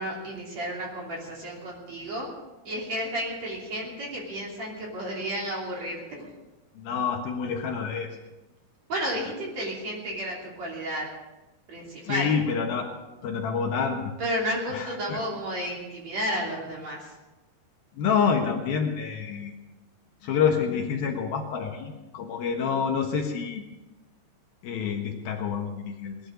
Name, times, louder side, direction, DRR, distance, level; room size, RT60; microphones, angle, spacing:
voice 1, 0.0-2.3 2.6-6.3 8.9-11.1 11.7-12.3 14.2-17.1, equal, 40° right, -3 dB, 4.0 m, -32 dB
voice 2, 6.8-8.2 12.0-12.9 13.2-14.1 14.7-15.2 18.0-19.5 20.2-23.6 24.6-26.2, left 6 dB, 65° left, 2 dB, 3.0 m, -27 dB
19.5 x 12.5 x 5.2 m, 1.1 s
omnidirectional pair, 4.9 m